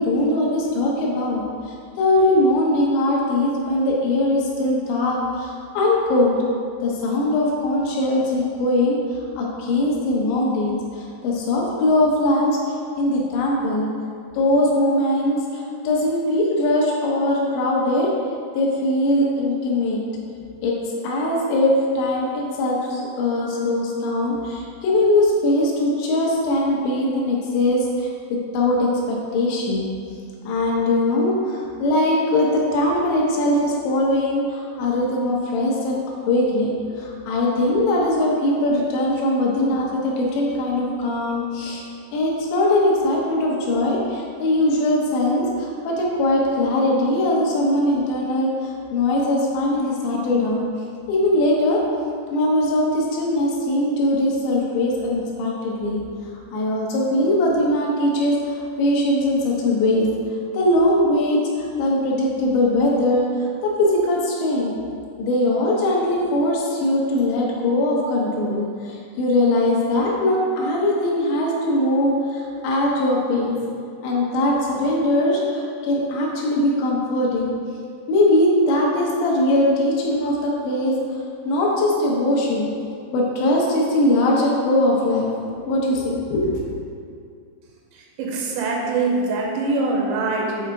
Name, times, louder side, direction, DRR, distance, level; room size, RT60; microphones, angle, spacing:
voice 1, 0.0-6.4 6.8-9.0 9.4-12.6 13.0-13.9 14.3-18.1 18.5-20.0 20.6-29.9 30.5-36.0 36.3-41.8 42.1-50.6 51.1-51.8 52.3-56.0 56.5-60.1 60.5-63.3 63.6-64.8 65.2-73.6 74.0-77.5 78.1-81.0 81.5-82.7 83.1-85.3 85.7-86.6, left 1 dB, 75° left, -3 dB, 2.9 m, -21 dB
voice 2, 88.2-90.7, right 3 dB, 85° right, -1 dB, 2.8 m, -23 dB
8.0 x 3.5 x 4.7 m, 2.3 s
omnidirectional pair, 5.3 m